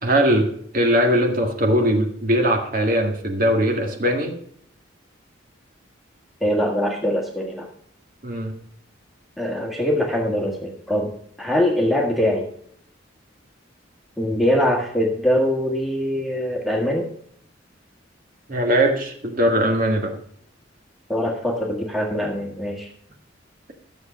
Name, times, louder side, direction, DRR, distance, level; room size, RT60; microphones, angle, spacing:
voice 1, 0.0-4.3 8.2-8.5 18.5-20.1, equal, 45° right, 2 dB, 1.8 m, -20 dB
voice 2, 6.4-7.7 9.4-12.5 14.2-17.1 21.1-22.9, equal, ahead, 0 dB, 1.7 m, -23 dB
13.0 x 7.3 x 5.2 m, 0.64 s
head